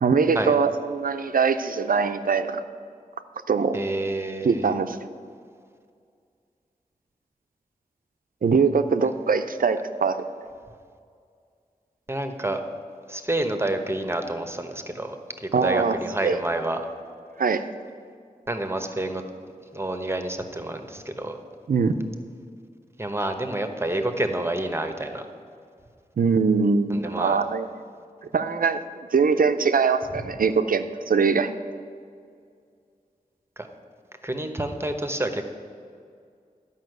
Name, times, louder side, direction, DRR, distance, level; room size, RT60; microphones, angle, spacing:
voice 1, 0.0-2.6 3.5-3.8 4.4-5.0 8.4-10.3 15.5-16.4 17.4-17.6 21.7-21.9 26.2-27.7 28.3-28.8 29.1-31.5, right 5 dB, 75° right, 9 dB, 0.6 m, -22 dB
voice 2, 3.7-4.7 12.1-12.6 13.1-15.2 15.4-16.8 18.5-19.2 19.7-21.4 23.0-25.2 26.9-27.4 33.6-33.7 34.2-35.5, right 1 dB, 15° right, 6 dB, 1.0 m, -28 dB
11.5 x 5.6 x 7.9 m, 2.2 s
wide cardioid pair, 55°, 15 cm